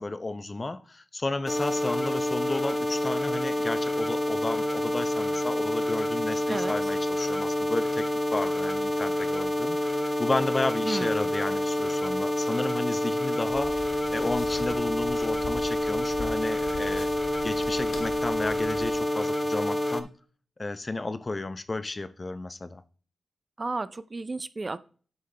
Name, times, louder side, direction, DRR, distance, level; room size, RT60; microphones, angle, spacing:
voice 1, 0.0-8.0 8.3-13.8 14.1-17.1 17.4-20.1 20.6-22.8, left 2 dB, 30° left, 0.7 m, -32 dB
sound 1, 1.5-20.0, left 1 dB, 10° left, 1.0 m, -28 dB
voice 2, 10.9-11.2 23.6-24.8, right 3 dB, 35° right, 0.5 m, -32 dB
sound 2, 13.5-19.0, left 4 dB, 85° left, 2.0 m, -42 dB
9.4 x 5.6 x 3.3 m
cardioid pair, 70°, 0 cm